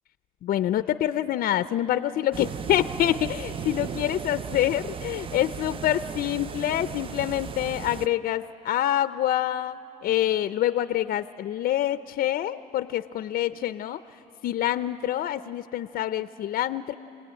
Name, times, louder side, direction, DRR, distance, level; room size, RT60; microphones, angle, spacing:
voice 1, 0.4-14.0 14.4-16.9, left 12 dB, 60° left, 12 dB, 0.5 m, -26 dB
sound 1, 2.3-8.1, right 7 dB, 30° right, 0.5 m, -36 dB
27.5 x 19.0 x 8.9 m, 2.9 s
cardioid pair, 110°, 17 cm